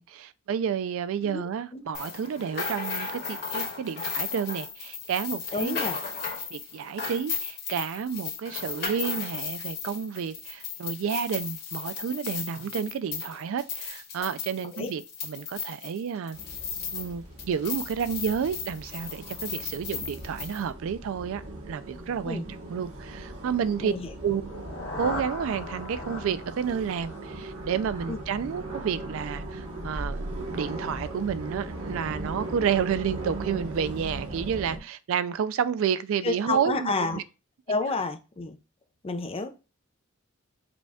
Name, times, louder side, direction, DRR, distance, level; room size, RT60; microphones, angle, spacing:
voice 1, 0.0-5.8 6.5-16.4 16.9-22.4 22.7-23.9 24.2-24.4 25.0-30.3 30.5-37.2, right 7 dB, 70° right, 0.3 m, -30 dB
sound 1, 1.9-17.1 17.4-20.6, left 6 dB, 50° left, 1.6 m, -35 dB
voice 2, 5.5-6.0 14.7-14.9 22.2-22.4 23.8-24.1 28.1-28.2 36.2-37.2 37.7-38.6 39.0-39.7, left 3 dB, 25° left, 0.5 m, -30 dB
sound 2, 16.3-34.8, right 2 dB, 90° right, 1.1 m, -38 dB
sound 3, 24.3-28.3, left 1 dB, 75° left, 1.0 m, -39 dB
5.0 x 2.3 x 3.4 m
head